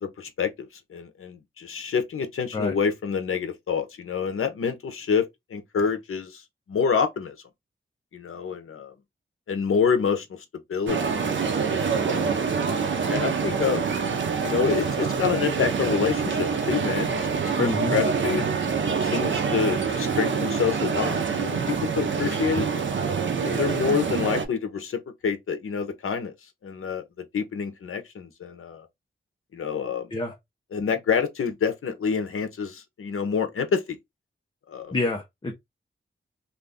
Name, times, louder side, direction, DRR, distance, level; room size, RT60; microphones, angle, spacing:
voice 1, 0.0-5.3 5.5-6.4 6.7-7.3 8.1-8.9 9.5-10.3 10.7-11.1 11.8-12.4 13.1-13.9 14.4-17.3 17.6-18.5 19.0-22.7 23.4-26.3 26.6-28.9 29.5-30.1 30.7-34.0 34.7-34.9, left 6 dB, 80° left, 0.7 m, -27 dB
sound 1, 10.9-24.4, right 5 dB, 65° right, 0.6 m, -26 dB
voice 2, 17.6-17.9 30.1-30.3 34.9-35.5, left 2 dB, 25° left, 0.6 m, -27 dB
2.5 x 2.4 x 3.4 m
wide cardioid pair, 150°, 21 cm